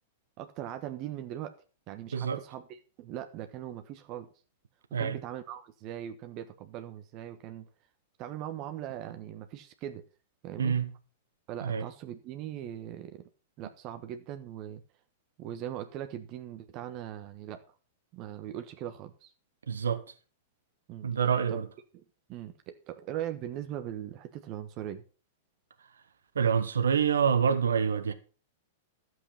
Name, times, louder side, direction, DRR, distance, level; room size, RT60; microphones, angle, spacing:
voice 1, 0.4-1.5 1.9-4.3 5.0-7.7 8.2-10.0 10.4-10.7 11.5-13.3 13.6-14.8 15.4-17.6 18.1-19.3 20.9-21.1 21.5-21.6 21.9-22.0 22.3-25.0, right 11 dB, 40° right, 1.2 m, -40 dB
voice 2, 10.6-10.9 11.6-11.9 19.7-20.0 21.0-21.7 26.3-28.1, right 7 dB, 75° right, 1.2 m, -26 dB
12.5 x 8.0 x 5.8 m
figure-of-eight pair, 100°, 0 cm